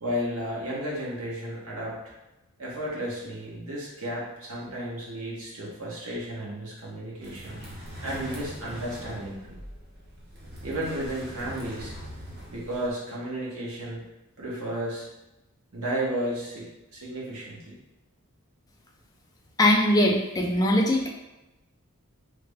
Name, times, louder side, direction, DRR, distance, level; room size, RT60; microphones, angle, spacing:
voice 1, 0.0-2.1 2.6-9.6 10.6-11.9 12.5-14.0 14.4-15.1 15.7-16.6 16.9-17.7, right 1 dB, 70° right, -5 dB, 1.0 m, -33 dB
sound 1, 7.2-12.9, equal, 45° right, 0.8 m, -41 dB
voice 2, 19.6-21.1, left 1 dB, 15° left, 0 dB, 0.4 m, -21 dB
3.3 x 2.0 x 3.4 m, 0.97 s
head